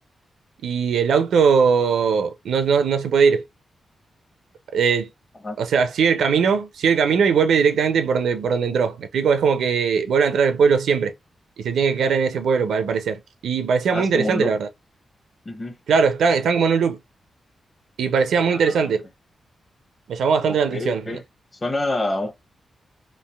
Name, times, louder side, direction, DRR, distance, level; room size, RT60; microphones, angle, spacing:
voice 1, 0.6-3.4 4.7-5.1 5.6-11.1 11.6-14.7 15.9-17.0 18.0-19.0 20.1-21.2, right 6 dB, 85° right, 0.5 m, -20 dB
voice 2, 13.9-14.6 15.4-15.8 18.5-18.9 20.5-21.2 21.6-22.3, left 2 dB, 35° left, 0.9 m, -27 dB
3.2 x 2.5 x 2.2 m
cardioid pair, 60°, 0 cm